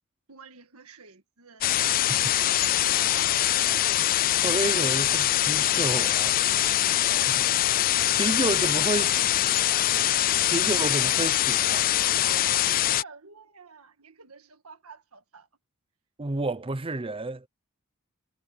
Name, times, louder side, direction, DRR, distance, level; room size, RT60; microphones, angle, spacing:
voice 1, 0.3-3.5 6.8-9.8 12.1-15.5, right 4 dB, 75° right, 1.8 m, -49 dB
sound 1, 1.6-13.0, left 13 dB, 40° left, 0.3 m, -23 dB
voice 2, 1.8-2.2 4.4-6.9 8.2-9.1 10.4-11.9 16.2-17.5, right 2 dB, 25° right, 0.7 m, -30 dB
head